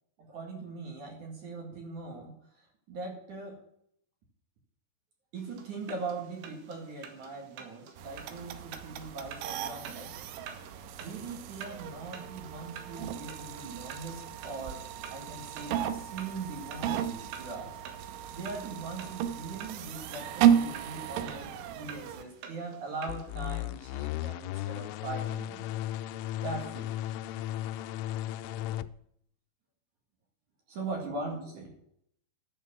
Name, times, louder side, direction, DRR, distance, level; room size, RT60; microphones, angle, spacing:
voice 1, 0.2-3.6 5.3-10.1 11.0-14.8 15.1-17.7 18.3-25.6 26.4-26.9 30.7-31.7, right 3 dB, 50° right, 1 dB, 2.8 m, -40 dB
sound 1, 5.4-23.4, right 7 dB, 70° right, 3.5 m, -50 dB
cd ram, 8.0-22.2, right 9 dB, 90° right, 3.3 m, -33 dB
sound 2, 23.1-28.9, left 13 dB, 85° left, 3.0 m, -35 dB
11.5 x 6.4 x 7.2 m, 0.70 s
omnidirectional pair, 5.5 m